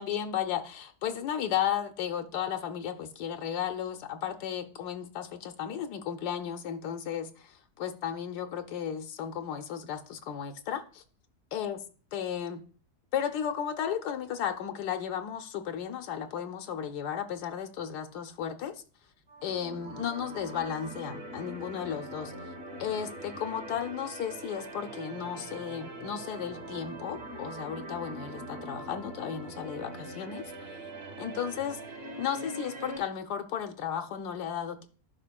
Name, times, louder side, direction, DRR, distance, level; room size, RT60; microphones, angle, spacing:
voice 1, 0.0-11.0 11.5-11.8 12.1-12.6 13.1-18.7 19.4-22.3 22.8-30.8 31.2-31.8 32.2-34.9, left 9 dB, 85° left, 1.2 m, -34 dB
sound 1, 19.3-33.0, right 1 dB, 40° right, 1.4 m, -42 dB
11.0 x 5.0 x 2.3 m
omnidirectional pair, 1.7 m